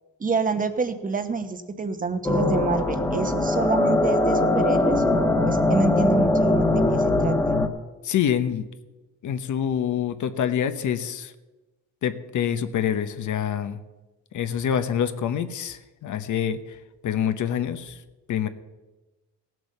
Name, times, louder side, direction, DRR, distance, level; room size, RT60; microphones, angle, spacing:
voice 1, 0.2-7.5, right 4 dB, 20° right, 9 dB, 1.2 m, -27 dB
sound 1, 2.2-7.7, left 2 dB, 10° left, 1.3 m, -21 dB
voice 2, 8.0-8.6 9.2-11.3 12.0-13.8 14.3-16.8 17.0-18.0 18.3-18.5, left 9 dB, 50° left, 10 dB, 1.0 m, -26 dB
16.5 x 7.8 x 6.6 m, 1.1 s
cardioid pair, 120°, 37 cm